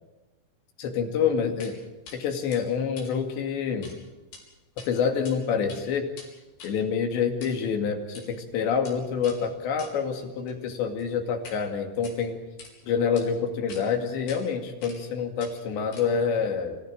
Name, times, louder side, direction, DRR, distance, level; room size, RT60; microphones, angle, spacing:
voice 1, 0.8-1.8 2.1-3.9 4.9-6.1 6.6-12.4 12.8-16.8, left 6 dB, 70° left, 4 dB, 4.5 m, -27 dB
sound 1, 1.6-1.8 2.1-2.2 2.5-4.0 4.2-4.4 4.8-5.3 5.6-11.6 11.9-12.7 13.2-13.3 13.7-13.8 14.3-14.4 14.8-15.1 15.4-16.3, left 4 dB, 55° left, 6.1 m, -47 dB
26.5 x 15.0 x 8.8 m, 1.1 s
omnidirectional pair, 5.3 m